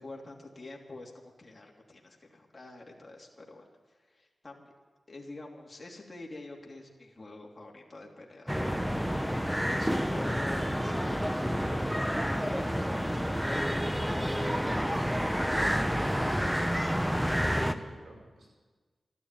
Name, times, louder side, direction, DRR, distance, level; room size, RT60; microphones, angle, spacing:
voice 1, 0.0-4.7 5.1-14.8, left 2 dB, 35° left, -1 dB, 2.9 m, -47 dB
sound 1, 8.5-17.7, equal, 5° right, 1.1 m, -29 dB
voice 2, 16.2-16.6 16.9-18.5, right 2 dB, 85° right, 0 dB, 5.6 m, -51 dB
14.0 x 11.5 x 9.1 m, 1.3 s
cardioid pair, 55°, 0 cm